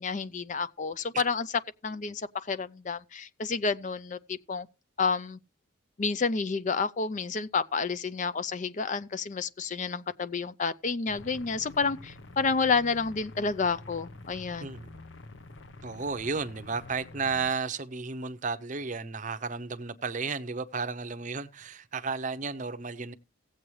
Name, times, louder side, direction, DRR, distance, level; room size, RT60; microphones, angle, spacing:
voice 1, 0.0-1.5 1.8-4.7 5.0-5.4 6.0-14.7, left 4 dB, 35° left, 0.4 m, -30 dB
sound 1, 11.1-17.5, left 2 dB, 60° left, 0.9 m, -48 dB
voice 2, 14.6-15.0 15.8-23.1, right 4 dB, 35° right, 0.7 m, -33 dB
17.0 x 7.8 x 3.2 m
head